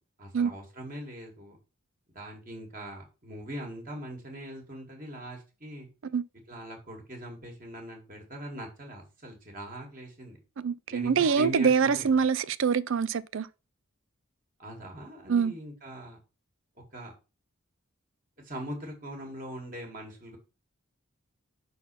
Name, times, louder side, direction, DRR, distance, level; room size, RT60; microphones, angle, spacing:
voice 1, 0.2-1.6 2.2-5.9 6.5-10.4 10.9-12.1 14.6-16.2 16.9-17.1 18.4-20.4, right 1 dB, 40° right, 1.9 m, -41 dB
voice 2, 10.6-13.5 15.3-15.5, right 6 dB, 65° right, 0.4 m, -25 dB
5.7 x 4.0 x 5.7 m
head